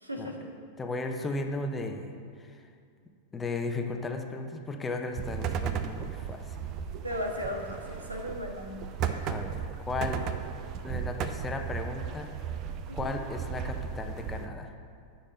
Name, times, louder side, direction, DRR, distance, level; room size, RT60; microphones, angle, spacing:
voice 1, 0.0-0.5 7.0-8.7 9.1-9.3 12.9-13.1, equal, 85° right, 1 dB, 1.5 m, -36 dB
voice 2, 0.8-2.6 3.3-6.6 9.2-10.3 10.8-12.3 12.9-14.7, left 3 dB, 15° left, 4 dB, 1.0 m, -35 dB
sound 1, 5.2-14.5, right 8 dB, 35° right, 0.7 m, -35 dB
10.0 x 7.1 x 7.8 m, 2.2 s
figure-of-eight pair, 90°, 0 cm